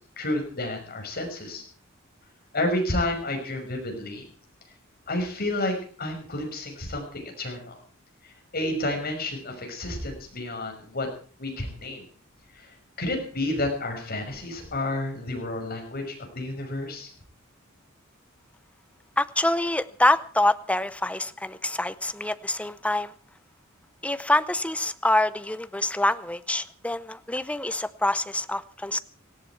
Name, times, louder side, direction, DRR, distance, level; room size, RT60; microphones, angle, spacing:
voice 1, 0.2-1.6 2.5-4.3 5.1-7.8 8.5-11.1 11.4-12.0 12.6-12.7 13.0-17.1, left 1 dB, 45° left, 3 dB, 5.9 m, -30 dB
voice 2, 19.2-23.1 24.0-29.0, left 1 dB, 5° left, 13 dB, 0.7 m, -26 dB
18.0 x 17.0 x 4.6 m, 0.42 s
head